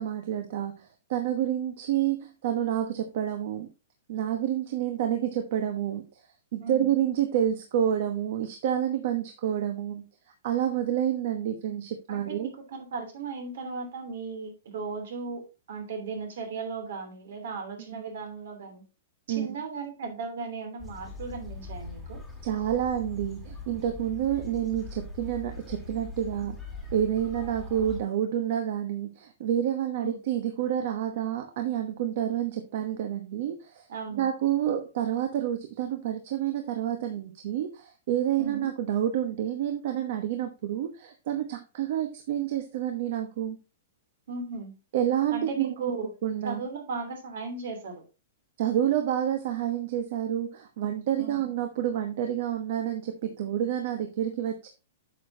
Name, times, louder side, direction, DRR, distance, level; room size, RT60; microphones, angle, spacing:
voice 1, 0.0-3.7 4.1-6.1 6.5-10.0 10.4-12.5 17.9-18.0 19.3-19.5 22.4-26.6 26.9-33.9 34.1-43.6 44.9-45.7 46.2-46.6 48.6-54.7, right 10 dB, 45° right, 6 dB, 1.0 m, -29 dB
voice 2, 12.1-18.8 19.3-22.2 30.0-30.2 33.9-34.3 38.4-38.7 44.3-44.8 45.3-46.1 46.4-48.0 51.2-51.4, right 4 dB, 65° right, 5 dB, 2.9 m, -36 dB
sound 1, 20.8-28.0, left 3 dB, 5° right, 1.8 m, -41 dB
9.1 x 6.7 x 2.7 m, 0.29 s
hypercardioid pair, 170°, 0 cm